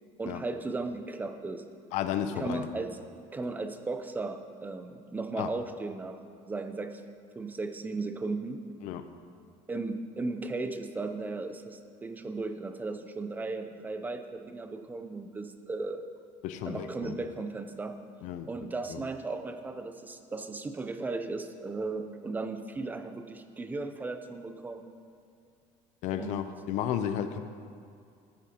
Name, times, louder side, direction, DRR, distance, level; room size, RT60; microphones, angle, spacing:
voice 1, 0.2-1.6 2.3-3.0 3.3-6.2 6.5-7.0 7.3-8.6 9.7-16.0 16.6-17.9 18.5-24.9 26.2-26.4, right 3 dB, 15° right, 8 dB, 0.5 m, -36 dB
voice 2, 1.9-2.7 5.4-5.5 8.8-9.1 16.4-17.1 18.2-18.5 18.9-19.0 26.0-27.5, left 9 dB, 65° left, 10 dB, 0.6 m, -33 dB
14.5 x 9.0 x 2.9 m, 2.4 s
cardioid pair, 150°, 13 cm